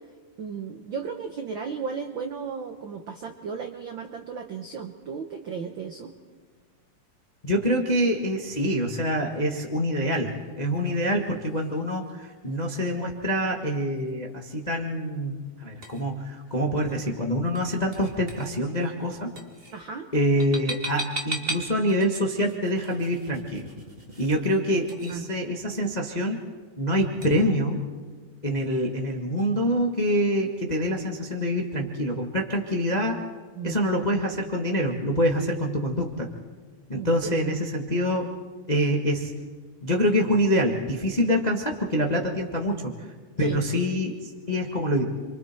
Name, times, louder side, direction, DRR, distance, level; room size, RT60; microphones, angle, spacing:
voice 1, 0.4-6.1 19.7-20.1 25.1-25.3 33.6-33.8 36.9-37.1 43.4-43.6, right 5 dB, 75° right, 5 dB, 1.1 m, -34 dB
voice 2, 7.4-19.3 20.1-23.6 24.2-26.4 26.8-27.8 28.4-33.2 33.6-36.3 36.9-38.3 38.7-39.3 39.8-42.9 43.4-45.0, equal, 35° left, 1 dB, 0.6 m, -25 dB
sound 1, 8.0-27.4, right 2 dB, 25° right, 1.5 m, -42 dB
29.5 x 24.0 x 4.5 m, 1.5 s
omnidirectional pair, 3.7 m